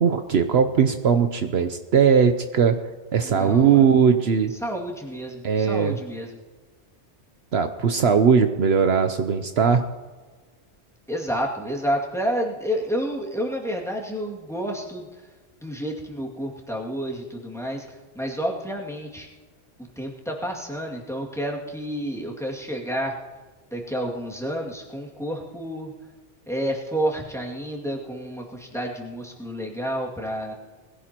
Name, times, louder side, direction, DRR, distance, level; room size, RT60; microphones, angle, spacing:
voice 1, 0.0-2.8 3.1-4.5 5.4-6.0 7.5-9.8, right 6 dB, 65° right, 7 dB, 1.0 m, -19 dB
voice 2, 3.2-3.9 4.6-6.4 11.1-15.1 15.6-19.3 20.0-23.2 23.7-25.9 26.5-30.5, equal, ahead, -2 dB, 2.2 m, -30 dB
21.0 x 16.0 x 2.9 m, 1.4 s
omnidirectional pair, 1.2 m